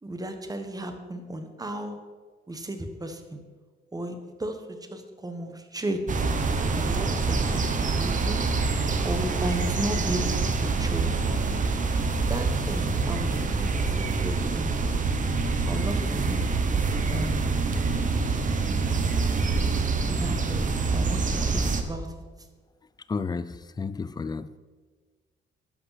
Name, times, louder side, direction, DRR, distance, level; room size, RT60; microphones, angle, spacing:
voice 1, 0.0-2.0 2.5-3.4 3.9-6.2 6.7-8.6 9.0-10.3 10.6-11.2 12.1-14.7 15.7-16.8 17.1-17.4 18.9-20.6 20.9-22.1, right 1 dB, 20° right, 7 dB, 1.3 m, -35 dB
sound 1, 6.1-21.8, right 4 dB, 40° right, 1.1 m, -26 dB
voice 2, 23.1-24.6, left 4 dB, 20° left, 15 dB, 0.4 m, -32 dB
11.5 x 5.5 x 5.8 m, 1.5 s
cardioid pair, 90°, 20 cm